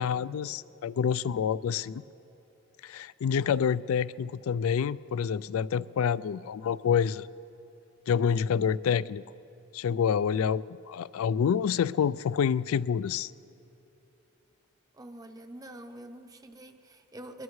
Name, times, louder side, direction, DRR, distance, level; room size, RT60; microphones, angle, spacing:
voice 1, 0.0-2.0 2.8-7.3 8.1-9.2 9.7-13.3, left 7 dB, 80° left, 19 dB, 0.3 m, -27 dB
voice 2, 14.9-17.4, right 1 dB, 15° right, 6 dB, 0.6 m, -46 dB
22.0 x 20.0 x 3.2 m, 2.9 s
head